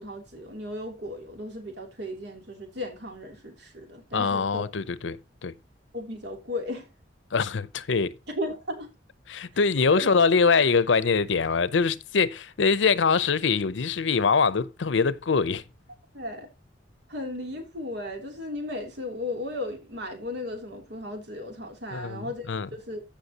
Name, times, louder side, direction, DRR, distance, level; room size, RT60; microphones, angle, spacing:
voice 1, 0.0-4.6 5.9-6.9 8.3-8.9 9.9-10.1 16.1-16.5 17.1-23.0, left 1 dB, 65° right, 3.0 m, -35 dB
voice 2, 4.1-5.5 7.3-8.2 9.3-15.6 21.9-22.7, left 5 dB, 90° left, 0.6 m, -23 dB
14.5 x 5.9 x 2.9 m
head